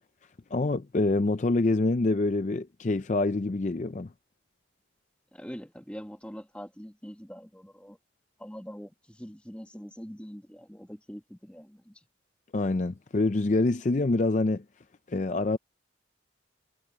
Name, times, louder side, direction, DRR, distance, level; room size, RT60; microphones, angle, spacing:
voice 1, 0.5-4.1 12.5-14.6 15.1-15.6, left 2 dB, 40° left, 0.5 m, -26 dB
voice 2, 5.3-8.0 8.4-12.0, equal, 5° left, 1.9 m, -43 dB
head